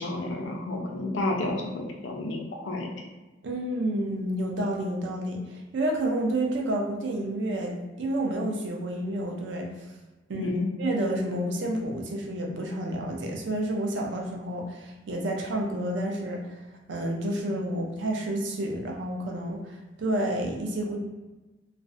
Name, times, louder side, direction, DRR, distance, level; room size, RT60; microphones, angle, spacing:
voice 1, 0.0-2.9 10.3-10.7, left 2 dB, 75° left, 1 dB, 0.5 m, -31 dB
voice 2, 3.4-9.7 10.3-16.5 16.9-21.0, right 1 dB, 65° right, 0 dB, 0.5 m, -30 dB
2.4 x 2.0 x 2.5 m, 1.1 s
head